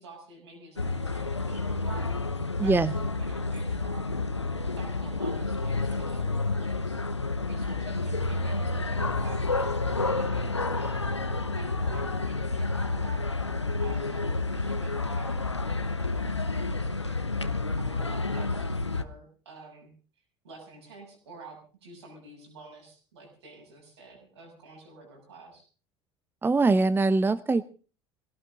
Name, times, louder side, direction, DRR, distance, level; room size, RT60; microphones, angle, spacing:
voice 1, 0.0-2.2 2.6-4.2 4.8-7.0 7.4-11.1 11.5-13.3 13.8-17.2 17.8-19.9 20.4-25.7, right 3 dB, 75° right, 1 dB, 6.8 m, -49 dB
sound 1, 0.8-19.0, left 3 dB, 90° left, 0.8 m, -30 dB
voice 2, 2.6-2.9 26.4-27.6, right 3 dB, 15° right, 15 dB, 0.8 m, -22 dB
20.0 x 17.5 x 3.8 m, 0.37 s
figure-of-eight pair, 65°, 14 cm